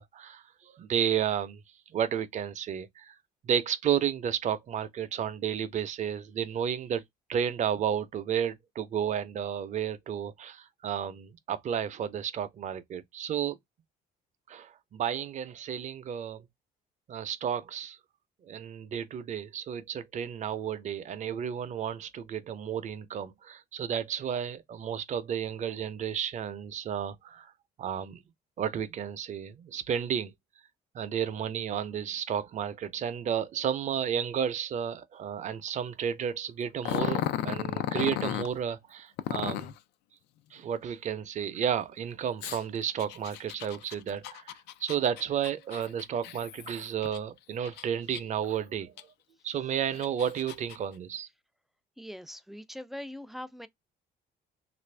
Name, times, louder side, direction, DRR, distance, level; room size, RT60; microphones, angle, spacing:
voice 1, 0.0-1.6 1.9-3.2 3.4-7.0 7.3-13.6 14.5-16.4 17.1-18.0 18.4-27.5 27.8-28.2 28.6-30.3 30.9-39.7 40.5-44.5 44.8-48.9 49.4-51.3, right 8 dB, 45° right, 0.5 m, -32 dB
Growling, 36.8-38.5 39.2-39.8 42.4-47.2 47.6-48.5 49.0-49.1 49.7-50.8, left 12 dB, 80° left, 0.4 m, -34 dB
voice 2, 52.0-53.7, left 1 dB, ahead, 0.3 m, -42 dB
3.0 x 2.5 x 3.2 m
cardioid pair, 110°, 17 cm